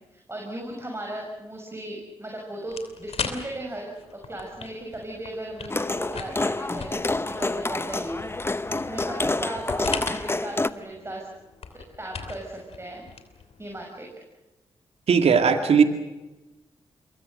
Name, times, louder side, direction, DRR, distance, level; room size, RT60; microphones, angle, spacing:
voice 1, 0.1-11.3 12.0-13.1 13.6-14.1, right 1 dB, 25° right, 0 dB, 6.7 m, -37 dB
sound 1, 2.7-13.8, left 6 dB, 65° left, 3.1 m, -39 dB
sound 2, 5.7-10.7, left 2 dB, 20° left, 0.9 m, -28 dB
voice 2, 15.1-15.8, right 6 dB, 65° right, 6 dB, 2.2 m, -18 dB
27.0 x 23.0 x 6.6 m, 1.1 s
supercardioid pair, 40°, 11 cm